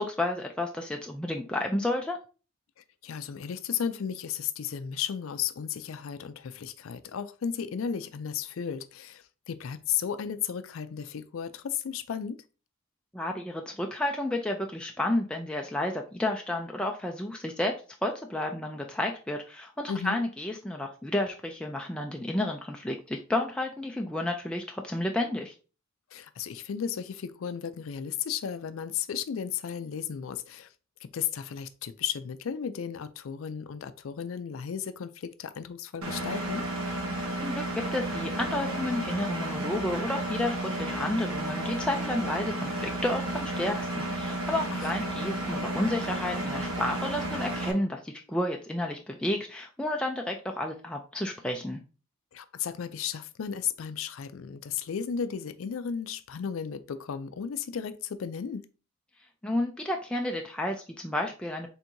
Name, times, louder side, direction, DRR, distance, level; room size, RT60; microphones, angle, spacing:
voice 1, 0.0-2.2 13.1-17.7 18.0-25.5 37.4-51.8 59.4-61.7, left 1 dB, 5° left, 0.3 m, -31 dB
voice 2, 3.0-12.4 19.9-20.2 26.1-30.7 31.0-36.7 44.7-44.9 52.3-58.6, left 8 dB, 75° left, 0.4 m, -34 dB
Engine, 36.0-47.7, right 1 dB, 80° right, 1.1 m, -32 dB
4.4 x 3.6 x 2.6 m
head